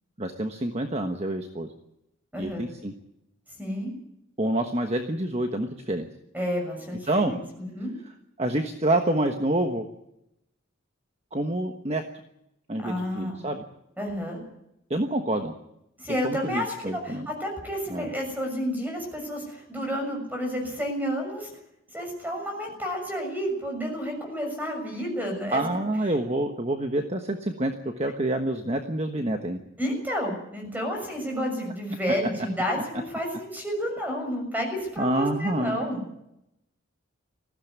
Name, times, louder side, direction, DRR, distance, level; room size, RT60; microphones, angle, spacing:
voice 1, 0.2-1.7 2.4-2.9 4.4-6.1 7.1-7.3 8.4-9.9 11.3-12.0 12.7-13.6 14.9-15.5 16.2-17.3 17.9-18.1 25.5-29.6 35.0-35.8, right 1 dB, 30° right, 5 dB, 1.3 m, -27 dB
voice 2, 2.3-2.7 3.6-3.9 6.3-7.9 12.8-13.4 14.0-14.4 16.0-21.5 21.9-25.6 29.8-36.0, equal, 10° right, 2 dB, 6.7 m, -30 dB
19.5 x 16.0 x 9.5 m, 0.82 s
head